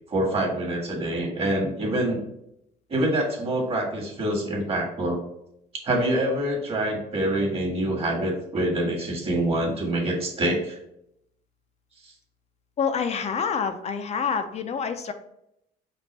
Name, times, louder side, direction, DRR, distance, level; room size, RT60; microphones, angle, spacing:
voice 1, 0.1-2.2 2.9-5.2 5.8-10.8 12.0-12.1, right 1 dB, 35° right, -1 dB, 1.5 m, -26 dB
voice 2, 12.8-15.1, left 6 dB, 40° left, 8 dB, 0.5 m, -27 dB
5.3 x 2.4 x 4.2 m, 0.79 s
cardioid pair, 110°, 17 cm